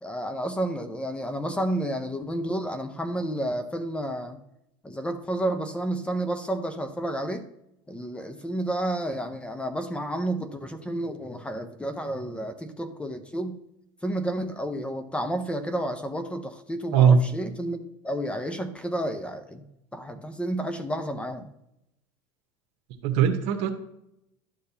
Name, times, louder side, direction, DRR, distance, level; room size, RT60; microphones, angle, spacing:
voice 1, 0.0-4.4 4.8-7.5 7.9-13.6 14.0-19.7 19.9-21.5, right 1 dB, 10° left, 8 dB, 0.8 m, -31 dB
voice 2, 23.0-23.7, right 7 dB, 65° right, 7 dB, 1.2 m, -19 dB
11.5 x 6.5 x 2.9 m, 0.83 s
supercardioid pair, 105°, 12 cm